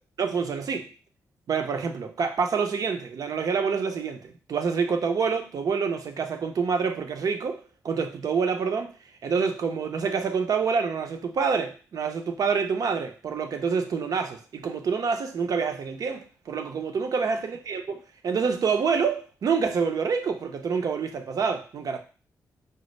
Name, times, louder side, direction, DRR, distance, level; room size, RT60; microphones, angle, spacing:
voice 1, 0.2-0.9 1.5-8.9 9.2-22.0, right 5 dB, 60° right, 0.6 m, -27 dB
4.2 x 2.0 x 3.1 m
supercardioid pair, 50°, 7 cm